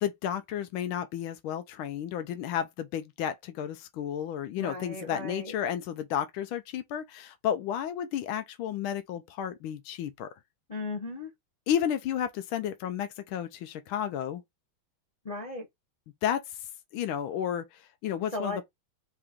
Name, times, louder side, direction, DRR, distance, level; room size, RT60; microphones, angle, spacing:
voice 1, 0.0-10.3 11.7-14.4 16.2-16.4 16.9-17.6 18.0-18.6, left 9 dB, 90° left, 1.5 m, -32 dB
voice 2, 4.6-5.5 10.7-11.3 15.2-15.7 18.3-18.6, left 2 dB, 50° left, 0.4 m, -36 dB
4.7 x 2.9 x 3.5 m
omnidirectional pair, 2.2 m